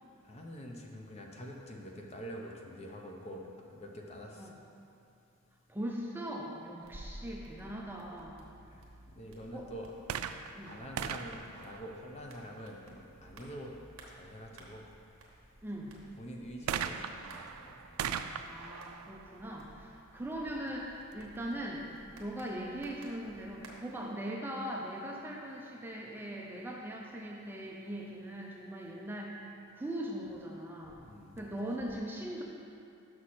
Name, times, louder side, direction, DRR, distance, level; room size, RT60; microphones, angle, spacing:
voice 1, 0.2-3.4 3.7-4.5 8.6-8.8 9.1-9.9 10.6-13.8 14.1-14.8 16.2-17.8 31.0-31.6, equal, 30° left, 0 dB, 0.7 m, -46 dB
voice 2, 5.7-8.4 9.5-9.7 10.5-10.8 15.6-15.9 18.4-29.4 29.7-31.0 31.4-32.4, right 1 dB, 10° right, -2 dB, 0.5 m, -40 dB
sound 1, 6.8-23.7, right 1 dB, 65° right, 1.1 m, -55 dB
sound 2, 10.0-12.6 16.7-20.3 21.1-21.2, right 8 dB, 85° right, 0.3 m, -40 dB
6.3 x 6.2 x 4.3 m, 2.6 s
head